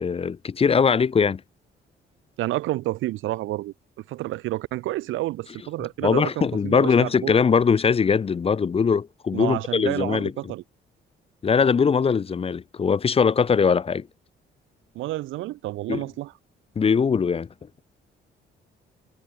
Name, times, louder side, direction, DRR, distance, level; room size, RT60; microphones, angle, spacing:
voice 1, 0.0-1.4 6.0-10.5 11.4-14.1 15.9-16.0 16.8-17.5, left 6 dB, 30° left, 0.5 m, -21 dB
voice 2, 2.4-3.7 4.1-7.4 9.3-10.6 14.9-16.3, right 17 dB, 85° right, 0.6 m, -29 dB
cardioid pair, 90°, 20 cm